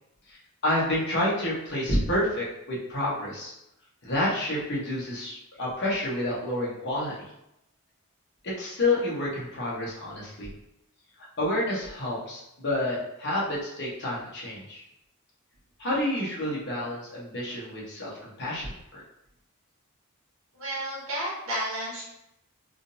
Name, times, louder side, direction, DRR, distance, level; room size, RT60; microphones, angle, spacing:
voice 1, 0.6-3.5 4.0-7.1 8.4-10.5 11.4-14.8 15.8-19.0, left 1 dB, 50° left, -5 dB, 1.1 m, -29 dB
voice 2, 20.5-22.0, right 1 dB, 70° right, -6 dB, 1.3 m, -32 dB
3.6 x 2.6 x 2.6 m, 0.82 s
head